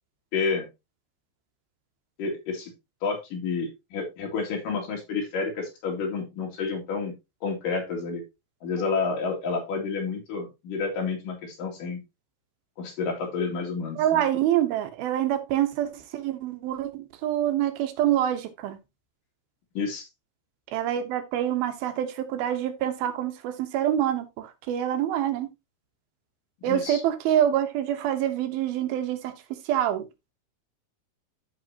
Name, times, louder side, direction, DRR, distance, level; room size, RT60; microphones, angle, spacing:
voice 1, 0.3-0.7 2.2-2.7 3.0-7.1 7.4-8.2 8.6-12.0 12.8-14.2 19.8-20.1 26.7-27.0, left 4 dB, 60° left, 3.9 m, -30 dB
voice 2, 14.0-18.8 20.7-25.5 26.6-29.3 29.7-30.1, right 11 dB, 75° right, 2.8 m, -26 dB
13.5 x 4.8 x 2.8 m
omnidirectional pair, 4.4 m